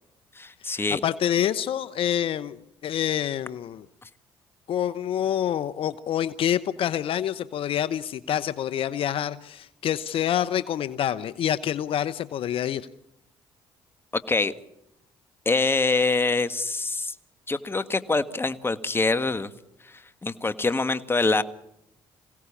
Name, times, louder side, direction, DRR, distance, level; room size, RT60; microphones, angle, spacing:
voice 1, 0.4-1.0 14.3-14.5 15.5-17.2 17.5-19.5 19.8-21.4, left 3 dB, 25° left, 12 dB, 1.6 m, -25 dB
voice 2, 1.0-3.9 4.7-12.8, left 10 dB, 65° left, 14 dB, 0.9 m, -27 dB
27.0 x 17.0 x 7.2 m, 0.82 s
supercardioid pair, 65°, 10 cm